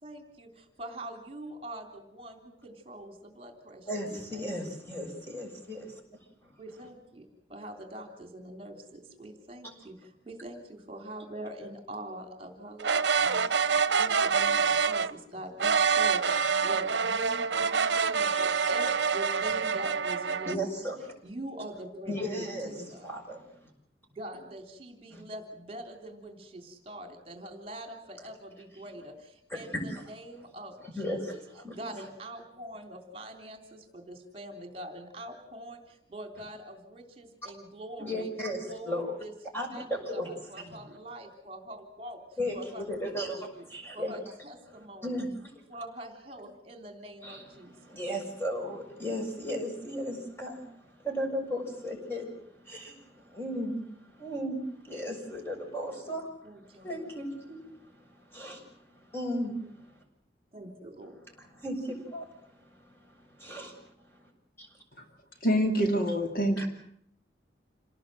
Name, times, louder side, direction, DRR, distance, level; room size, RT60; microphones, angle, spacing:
voice 1, 0.0-4.5 6.6-20.6 21.2-23.1 24.1-31.4 31.7-38.3 38.7-39.3 39.7-42.2 42.5-43.6 43.9-45.2 45.7-48.0 56.4-57.0 60.5-61.1, right 1 dB, 30° right, 3.4 m, -44 dB
voice 2, 3.9-6.0 6.4-6.5 20.4-21.1 22.1-22.7 23.0-23.7 25.1-25.2 29.5-30.0 30.9-31.3 31.6-31.7 38.0-39.2 39.5-40.3 40.5-40.6 42.4-44.2 45.0-45.6 47.2-47.4 47.8-56.3 56.8-60.0 61.4-64.2 64.6-64.7 66.6-66.7, equal, 10° left, 6.8 m, -36 dB
sound 1, 12.8-15.1 15.6-20.6, right 5 dB, 75° right, 0.9 m, -26 dB
voice 3, 65.4-66.6, equal, 50° left, 2.5 m, -25 dB
28.0 x 19.0 x 7.8 m
head